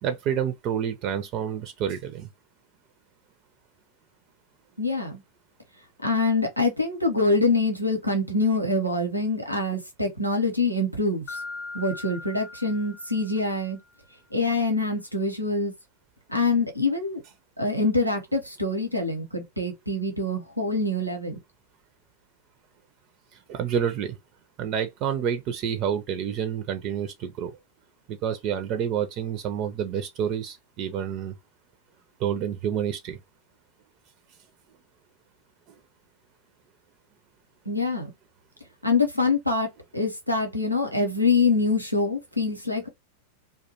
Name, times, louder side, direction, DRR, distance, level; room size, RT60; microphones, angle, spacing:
voice 1, 0.0-2.3 23.3-24.2 24.6-27.6 28.1-31.3 32.2-33.2, right 8 dB, 40° right, 0.4 m, -28 dB
voice 2, 4.8-5.2 6.0-11.4 11.7-13.8 14.3-15.7 16.3-17.2 17.6-21.4 37.7-38.1 38.8-42.9, left 3 dB, 90° right, 0.7 m, -25 dB
Mallet percussion, 11.3-13.8, left 3 dB, 30° left, 0.6 m, -40 dB
2.3 x 2.1 x 2.7 m
figure-of-eight pair, 90°, 0 cm